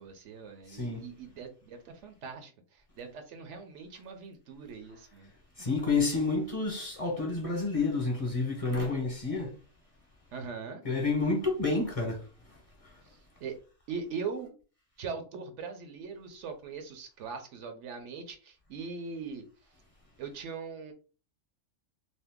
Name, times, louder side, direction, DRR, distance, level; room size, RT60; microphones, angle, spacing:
voice 1, 0.0-5.3 10.3-10.8 13.0-13.6 13.9-14.5 15.0-19.4 20.2-20.9, right 5 dB, 70° right, 0.9 m, -41 dB
voice 2, 0.7-1.0 5.6-9.5 10.8-12.2, left 3 dB, 30° left, 1.0 m, -29 dB
2.7 x 2.5 x 3.5 m
omnidirectional pair, 1.3 m